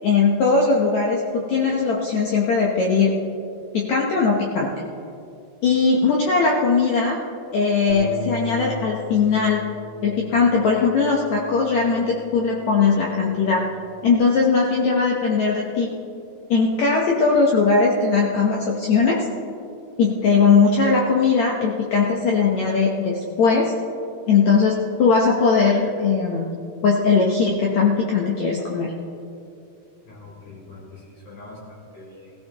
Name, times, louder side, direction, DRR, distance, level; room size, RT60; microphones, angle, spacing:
voice 1, 0.0-3.2 3.7-4.7 5.6-7.2 7.5-9.6 10.0-13.6 14.0-15.9 16.5-19.2 20.0-23.7 24.3-26.5 26.8-28.9, left 4 dB, 85° left, -2 dB, 1.6 m, -19 dB
Bass guitar, 7.9-14.1, left 4 dB, 60° right, 2.9 m, -39 dB
voice 2, 30.0-32.3, left 2 dB, 45° left, -6 dB, 4.9 m, -43 dB
20.0 x 15.0 x 3.0 m, 2.7 s
omnidirectional pair, 4.7 m